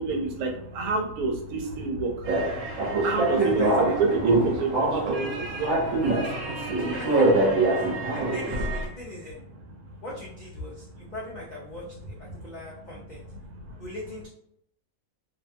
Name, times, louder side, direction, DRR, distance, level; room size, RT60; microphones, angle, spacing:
voice 1, 0.0-6.9 7.9-8.1 9.5-10.0 10.8-11.1 12.3-12.7 13.4-13.8, right 4 dB, 90° right, 2 dB, 1.1 m, -30 dB
sound 1, 2.2-8.8, right 2 dB, 70° right, 1.1 m, -24 dB
voice 2, 3.4-3.9 6.8-7.3 7.7-9.4 10.0-11.8 12.2-13.2 13.8-14.3, left 1 dB, 85° left, -5 dB, 0.4 m, -40 dB
2.7 x 2.2 x 2.6 m, 0.73 s
omnidirectional pair, 1.5 m